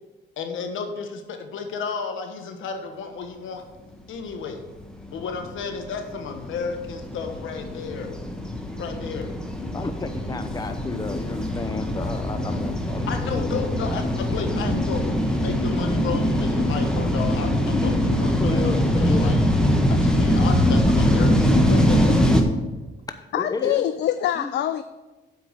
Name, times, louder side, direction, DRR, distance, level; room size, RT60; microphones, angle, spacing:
voice 1, 0.4-3.6 4.1-4.6 5.1-8.1 8.8-9.3 11.7-19.4 19.9-22.2, left 5 dB, 80° left, 5 dB, 1.3 m, -33 dB
sound 1, 4.7-22.4, equal, 5° left, 1.2 m, -22 dB
voice 2, 9.7-13.1 18.4-19.3 23.3-23.8 24.4-24.5, left 3 dB, 20° left, 8 dB, 0.7 m, -31 dB
voice 3, 23.3-24.8, left 11 dB, 60° left, 12 dB, 0.4 m, -24 dB
7.8 x 4.9 x 6.7 m, 1.2 s
cardioid pair, 90°, 20 cm